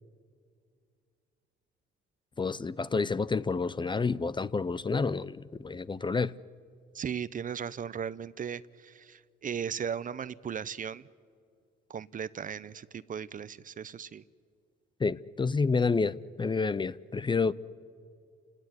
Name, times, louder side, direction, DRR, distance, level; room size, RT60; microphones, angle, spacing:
voice 1, 2.4-6.3 15.0-17.5, left 4 dB, 25° left, 0.6 m, -29 dB
voice 2, 6.9-11.0 11.9-14.2, right 7 dB, 45° right, 0.7 m, -37 dB
29.5 x 18.0 x 9.6 m
cardioid pair, 90°, 20 cm